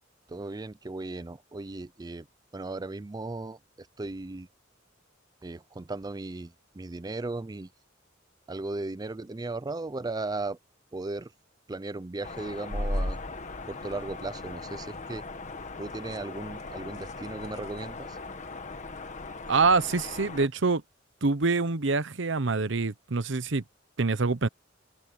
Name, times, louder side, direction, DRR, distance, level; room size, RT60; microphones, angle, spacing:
voice 1, 0.3-2.3 2.5-4.5 5.4-7.7 8.5-10.6 10.9-11.3 11.7-13.2 13.6-15.3 15.8-18.2, right 2 dB, 20° right, 0.5 m, -36 dB
sound 1, 12.2-20.5, left 2 dB, 40° left, 1.6 m, -37 dB
voice 2, 19.5-20.8 21.2-23.6 24.0-24.5, right 4 dB, 70° right, 0.9 m, -25 dB
head